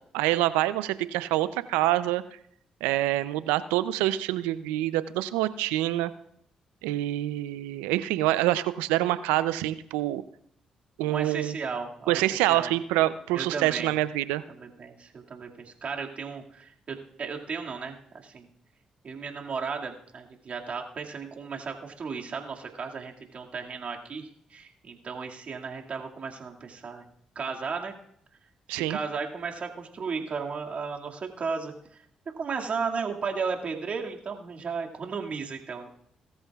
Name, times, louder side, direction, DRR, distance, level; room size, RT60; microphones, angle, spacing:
voice 1, 0.1-2.2 2.8-6.1 6.8-10.2 11.0-11.5 12.1-14.4 28.7-29.0, right 15 dB, 90° right, 14 dB, 0.5 m, -26 dB
voice 2, 11.1-12.7 13.3-13.9 14.5-18.5 19.0-27.0 27.4-28.0 28.7-32.0 32.4-35.9, right 5 dB, 55° right, 1 dB, 2.2 m, -35 dB
19.0 x 13.5 x 2.4 m, 0.68 s
supercardioid pair, 50°, 3 cm